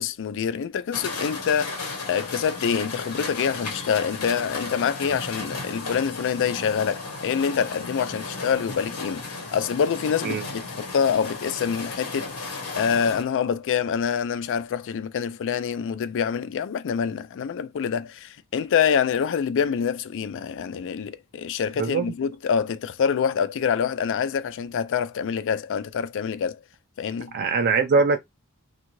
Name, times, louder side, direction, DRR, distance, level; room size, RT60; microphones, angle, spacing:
voice 1, 0.0-26.6 27.0-27.3, left 7 dB, 55° left, 0.3 m, -26 dB
sound 1, 0.9-13.2, left 3 dB, 85° left, 1.1 m, -34 dB
voice 2, 27.3-28.2, right 4 dB, 45° right, 0.3 m, -21 dB
2.7 x 2.4 x 2.9 m
head